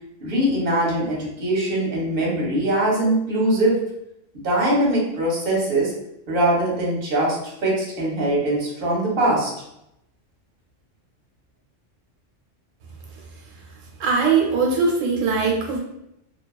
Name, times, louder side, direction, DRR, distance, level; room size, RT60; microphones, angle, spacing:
voice 1, 0.2-3.8 4.4-5.9 6.3-7.4 7.6-9.5, right 1 dB, 50° right, -4 dB, 1.0 m, -22 dB
voice 2, 14.0-15.8, right 4 dB, 90° right, 0 dB, 1.0 m, -20 dB
2.6 x 2.3 x 2.3 m, 0.81 s
omnidirectional pair, 1.3 m